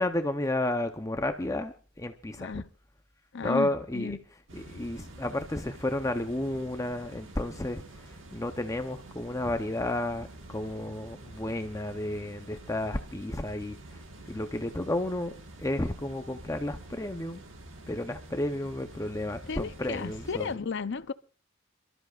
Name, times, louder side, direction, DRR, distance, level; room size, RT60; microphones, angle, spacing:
voice 1, 0.0-2.6 3.4-4.2 4.5-14.0 14.3-15.3 15.6-17.4 17.9-20.5, left 1 dB, 15° left, 0.7 m, -32 dB
voice 2, 2.4-2.7 3.3-4.2 19.5-21.1, left 5 dB, 55° left, 0.6 m, -34 dB
sound 1, 4.5-20.5, right 2 dB, 60° right, 1.6 m, -48 dB
27.5 x 13.0 x 2.4 m
head